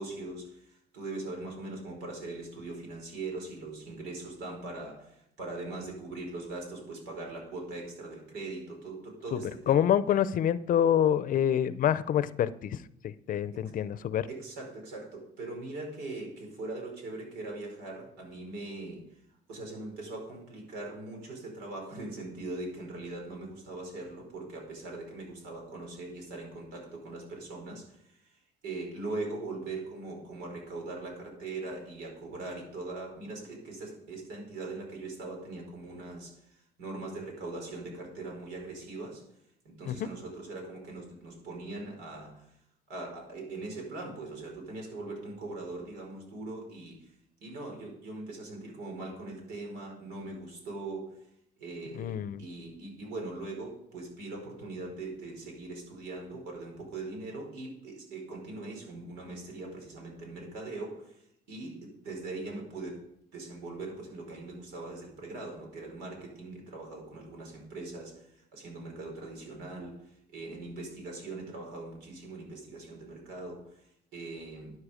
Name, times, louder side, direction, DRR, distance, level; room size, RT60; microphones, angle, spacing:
voice 1, 0.0-9.9 14.3-19.2 19.5-39.2 39.7-42.5 42.9-47.1 47.4-51.1 51.6-61.2 61.5-63.0 63.3-74.7, right 2 dB, 85° right, 1 dB, 5.0 m, -41 dB
voice 2, 9.3-14.3 39.9-40.1 52.0-52.4, left 10 dB, 55° left, 16 dB, 0.6 m, -27 dB
13.0 x 9.6 x 5.1 m, 0.77 s
cardioid pair, 110°, 17 cm